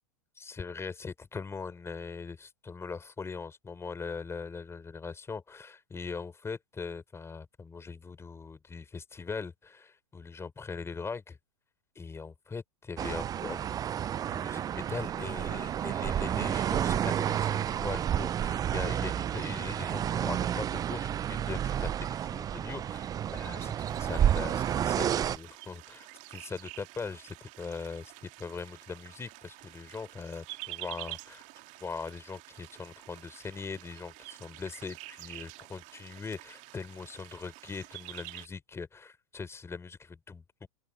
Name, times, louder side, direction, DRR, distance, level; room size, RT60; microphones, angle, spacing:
voice 1, 0.4-11.4 11.9-13.6 13.9-14.0 14.3-31.4 31.8-40.7, left 4 dB, 15° left, 4.9 m, -41 dB
sound 1, 13.0-25.4, right 10 dB, 20° right, 0.5 m, -30 dB
sound 2, 23.9-38.5, right 23 dB, 45° right, 2.1 m, -48 dB
open air
hypercardioid pair, 105°, 17 cm